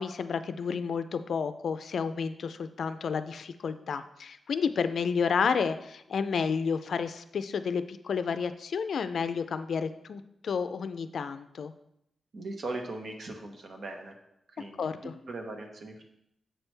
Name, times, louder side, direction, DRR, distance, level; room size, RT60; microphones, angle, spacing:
voice 1, 0.0-11.7 14.8-15.1, left 6 dB, 65° left, 11 dB, 0.4 m, -31 dB
voice 2, 12.3-14.2 14.5-16.0, right 2 dB, 55° right, 2 dB, 1.2 m, -39 dB
7.6 x 6.2 x 3.3 m, 0.79 s
wide cardioid pair, 130°, 0 cm